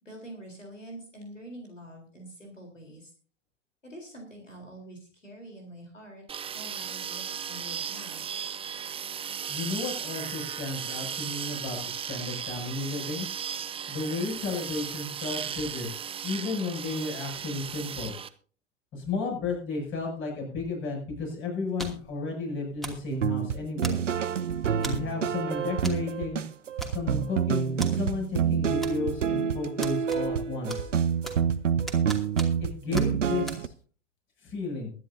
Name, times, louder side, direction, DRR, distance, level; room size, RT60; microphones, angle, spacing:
voice 1, 0.0-3.1 3.8-6.2 6.5-8.3, right 1 dB, 85° left, 2 dB, 3.9 m, -46 dB
sound 1, 6.3-18.3, right 8 dB, 15° right, 0.8 m, -36 dB
voice 2, 9.5-13.3 13.9-15.9 16.2-18.1 18.9-24.0 24.8-26.4 26.9-30.9 32.6-33.7 34.4-34.9, left 3 dB, 35° left, 1 dB, 7.4 m, -33 dB
sound 2, 21.8-22.1 22.8-23.1 23.8-24.3 24.8-25.1 25.8-26.0 26.3-26.4 26.8-27.3 27.8-27.9 28.8-29.3 29.8-30.4 30.7-31.5 31.9-32.7 33.0-33.1 33.5-33.6, right 1 dB, ahead, 2.6 m, -39 dB
sound 3, 23.1-33.7, right 7 dB, 75° right, 0.9 m, -28 dB
23.0 x 10.5 x 2.7 m, 0.41 s
figure-of-eight pair, 90°, 37 cm